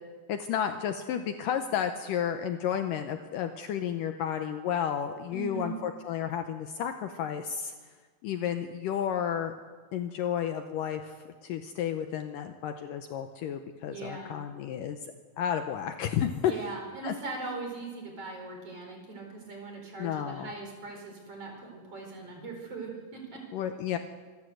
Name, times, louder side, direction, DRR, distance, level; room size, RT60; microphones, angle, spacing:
voice 1, 0.3-7.8 8.2-9.5 9.9-11.1 11.4-15.0 15.4-16.5 17.0-17.1 20.0-20.5 23.5-24.0, left 9 dB, 75° left, 7 dB, 2.2 m, -32 dB
voice 2, 5.3-5.7 13.8-14.4 16.5-23.4, right 3 dB, 40° right, 2 dB, 5.1 m, -40 dB
25.5 x 13.0 x 7.8 m, 1.4 s
omnidirectional pair, 4.4 m